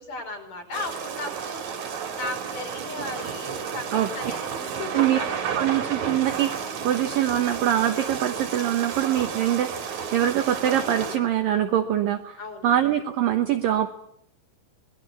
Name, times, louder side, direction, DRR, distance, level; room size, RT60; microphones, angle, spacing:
voice 1, 0.0-5.7 12.4-12.7, left 2 dB, 40° left, 2 dB, 6.7 m, -36 dB
sound 1, 0.7-11.2, right 7 dB, 50° right, 2.8 m, -32 dB
voice 2, 4.9-13.9, right 11 dB, 85° right, 7 dB, 1.9 m, -24 dB
24.5 x 20.5 x 8.5 m, 0.71 s
omnidirectional pair, 5.7 m